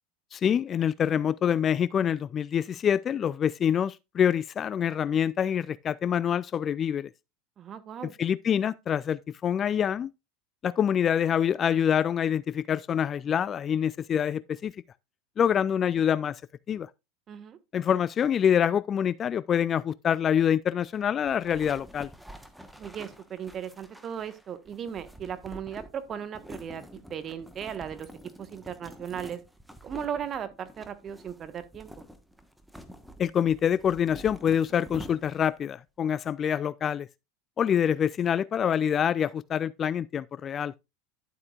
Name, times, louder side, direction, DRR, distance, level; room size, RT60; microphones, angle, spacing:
voice 1, 0.3-7.1 8.2-10.1 10.6-14.7 15.4-16.4 16.7-16.9 17.7-22.1 33.2-37.1 37.6-40.7, left 8 dB, 35° left, 0.4 m, -26 dB
voice 2, 7.6-8.1 17.3-17.6 22.8-26.8 27.1-28.1 28.4-29.4 29.8-31.9, right 8 dB, 35° right, 1.4 m, -37 dB
sound 1, 21.3-35.6, equal, 5° right, 1.3 m, -48 dB
11.0 x 7.9 x 2.5 m
figure-of-eight pair, 80°, 0 cm